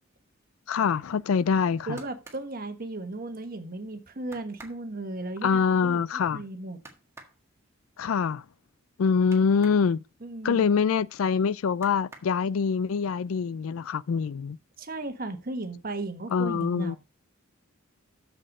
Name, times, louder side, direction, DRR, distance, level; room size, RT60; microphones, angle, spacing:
voice 1, 0.7-2.0 5.4-6.4 8.0-8.4 9.0-10.0 10.4-14.6 16.3-17.0, left 6 dB, 80° left, 0.4 m, -25 dB
sound 1, 1.8-3.5 3.9-4.0 4.2-9.9 10.2-11.3 11.7-12.8 13.2-13.8 14.1-14.8 15.2-15.3, right 2 dB, 15° right, 1.7 m, -52 dB
voice 2, 1.9-6.0 6.3-6.8 10.2-10.7 14.8-17.0, right 2 dB, 45° right, 1.3 m, -36 dB
7.5 x 6.8 x 5.4 m
head